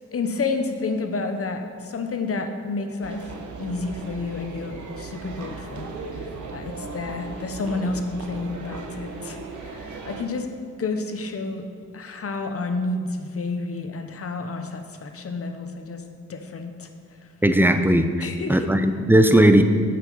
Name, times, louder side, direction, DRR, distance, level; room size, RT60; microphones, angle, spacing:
voice 1, 0.1-5.9 6.2-6.3 6.5-10.5 10.8-11.6 11.9-16.0 16.3-16.9 18.2-18.7, left 3 dB, 50° left, 6 dB, 0.9 m, -30 dB
sound 1, 3.0-10.2, right 4 dB, 80° right, 1.0 m, -37 dB
voice 2, 17.4-19.6, right 1 dB, 5° right, 8 dB, 0.6 m, -17 dB
7.9 x 6.0 x 5.4 m, 2.2 s
cardioid pair, 75°, 30 cm